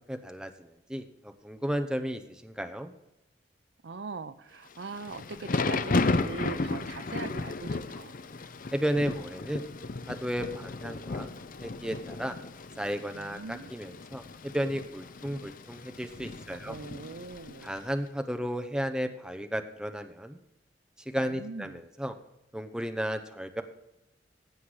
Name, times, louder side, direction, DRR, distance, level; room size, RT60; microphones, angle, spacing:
voice 1, 0.1-2.9 8.7-9.7 10.1-11.3 11.6-12.4 12.8-16.8 17.6-20.4 21.1-22.1 22.5-23.6, equal, 5° right, 6 dB, 0.7 m, -33 dB
voice 2, 3.8-8.2 13.1-13.7 16.7-17.8 21.2-21.8, right 4 dB, 80° right, 14 dB, 0.6 m, -41 dB
Thunder / Rain, 4.8-17.8, left 3 dB, 50° left, 0.6 m, -34 dB
15.5 x 5.8 x 4.9 m, 0.88 s
head